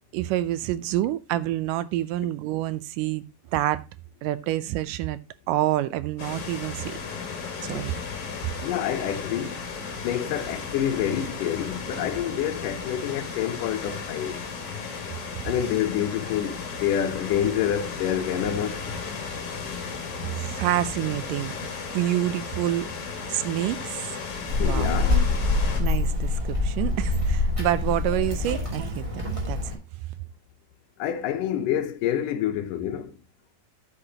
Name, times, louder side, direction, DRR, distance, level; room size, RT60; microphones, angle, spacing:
voice 1, 0.1-3.2 3.5-3.8 4.2-5.2 5.5-7.0 7.6-8.0 20.4-21.6 21.9-22.9 23.3-24.1 24.6-24.9 25.5-29.7, right 14 dB, 80° right, 2.1 m, -27 dB
sound 1, 6.2-25.8, left 5 dB, 45° left, 2.8 m, -35 dB
voice 2, 8.6-9.6 10.0-14.4 15.4-18.8 24.6-25.2 31.0-33.2, left 10 dB, 75° left, 2.4 m, -27 dB
Child speech kid speaking, 24.5-29.7, left 3 dB, 10° right, 2.0 m, -25 dB
10.0 x 8.2 x 2.8 m
omnidirectional pair, 3.9 m